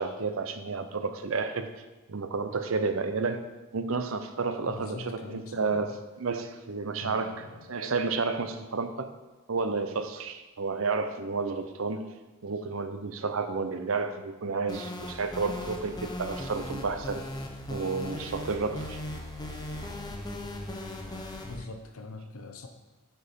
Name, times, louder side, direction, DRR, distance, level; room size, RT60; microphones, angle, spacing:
voice 1, 0.0-1.7 2.1-3.5 3.7-5.9 6.2-7.3 7.7-9.1 9.5-12.1 12.4-17.3 17.7-19.0, right 4 dB, 70° right, 9 dB, 0.6 m, -31 dB
voice 2, 4.6-5.9 7.0-7.7 21.4-22.7, left 3 dB, 85° left, 5 dB, 0.7 m, -43 dB
sound 1, 14.7-21.6, left 1 dB, 20° left, 0.8 m, -38 dB
8.5 x 4.5 x 5.2 m, 1.1 s
head